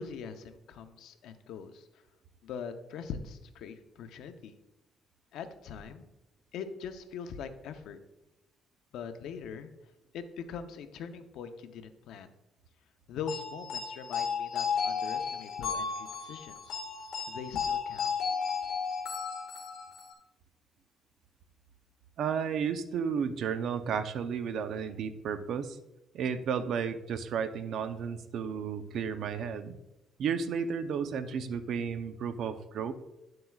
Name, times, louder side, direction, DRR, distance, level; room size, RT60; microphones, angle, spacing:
voice 1, 0.0-1.9 2.4-4.5 5.3-6.1 6.5-8.0 8.9-9.7 10.1-12.3 13.1-16.8 17.3-18.2, left 6 dB, 80° left, 8 dB, 0.7 m, -42 dB
sound 1, 13.3-20.1, left 6 dB, 60° left, 1.7 m, -34 dB
voice 2, 22.2-25.8 26.1-29.8 30.2-32.9, right 7 dB, 60° right, 10 dB, 0.6 m, -33 dB
10.5 x 7.7 x 2.4 m, 0.95 s
cardioid pair, 150°, 0 cm